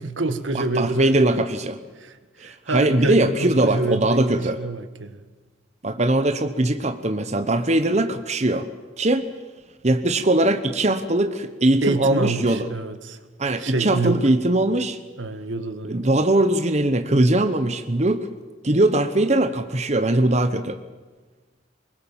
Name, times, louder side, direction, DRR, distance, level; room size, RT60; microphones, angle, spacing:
voice 1, 0.0-1.4 2.0-5.2 11.8-13.2 13.6-14.2 15.2-16.3, right 2 dB, 90° right, 9 dB, 1.7 m, -27 dB
voice 2, 0.5-1.8 2.4-4.6 5.8-8.7 9.0-9.3 9.8-12.7 13.4-15.0 15.9-18.3 18.6-20.8, right 1 dB, 35° right, 9 dB, 1.0 m, -21 dB
24.0 x 21.0 x 7.4 m, 1.3 s
head